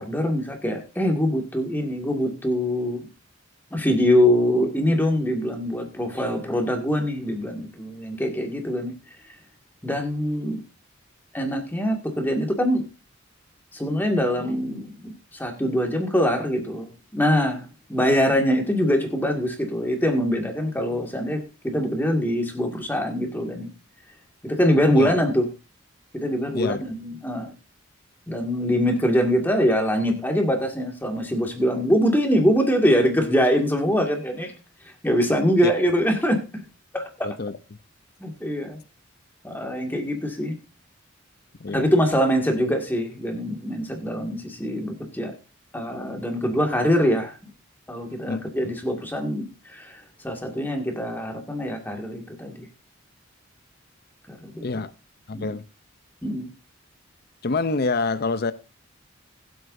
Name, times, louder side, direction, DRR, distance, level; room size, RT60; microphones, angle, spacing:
voice 1, 0.0-3.1 3.7-8.9 9.8-10.6 11.3-12.8 13.7-23.7 24.4-25.5 26.1-27.5 28.3-34.5 35.0-36.4 36.9-37.3 38.2-38.8 39.4-40.6 41.7-45.3 45.7-47.4 47.9-52.7 54.3-54.8 55.3-55.5 56.2-56.5, equal, 10° left, 2.0 m, -23 dB
voice 2, 37.2-37.5 41.6-41.9 48.3-48.7 54.6-54.9 55.3-55.6 57.4-58.5, left 3 dB, 50° left, 0.6 m, -26 dB
20.5 x 7.9 x 2.6 m
head